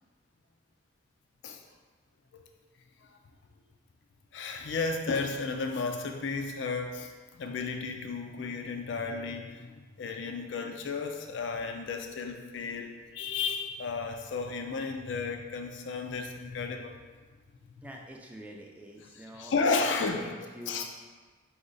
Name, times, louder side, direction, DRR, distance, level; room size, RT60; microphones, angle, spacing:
voice 1, 4.3-17.0 19.2-20.3 20.7-20.8, left 4 dB, 70° left, 4 dB, 0.4 m, -33 dB
voice 2, 17.8-19.6 20.0-20.8, equal, 5° right, 0 dB, 0.3 m, -46 dB
4.9 x 2.4 x 3.8 m, 1.4 s
head